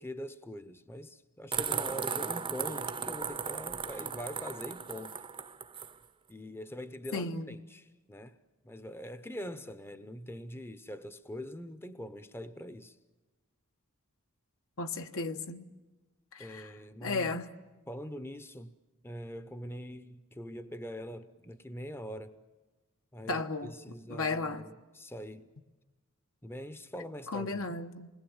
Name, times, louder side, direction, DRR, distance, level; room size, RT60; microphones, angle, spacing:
voice 1, 0.0-5.2 6.3-8.4 8.6-13.0 16.4-17.4 17.9-18.8 19.0-22.4 23.1-25.5 26.4-27.7, equal, 10° left, 0.8 m, -43 dB
sound 1, 1.5-5.9, right 6 dB, 25° right, 0.7 m, -36 dB
voice 2, 7.1-7.5 14.8-15.6 16.3-16.7 17.0-17.5 23.3-23.7 24.1-24.6 27.3-28.1, left 3 dB, 65° left, 1.2 m, -34 dB
27.5 x 21.0 x 7.2 m
head